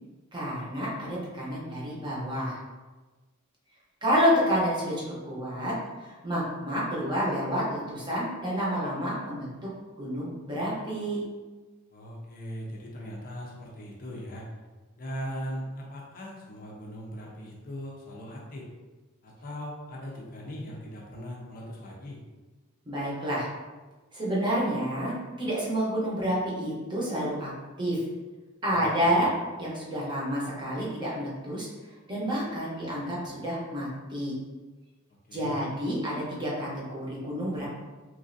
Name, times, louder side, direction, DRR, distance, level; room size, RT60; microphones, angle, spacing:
voice 1, 0.3-2.6 4.0-5.7 6.0-9.5 10.0-11.2 22.9-23.5 24.1-27.5 27.8-28.0 28.6-29.3 29.6-31.7 32.1-34.3 35.3-37.7, equal, 20° right, -6 dB, 0.8 m, -29 dB
voice 2, 11.9-14.4 15.0-18.7 19.2-22.2 28.7-29.2 35.3-35.6, equal, 40° left, -3 dB, 0.5 m, -39 dB
3.0 x 2.5 x 2.5 m, 1.3 s
head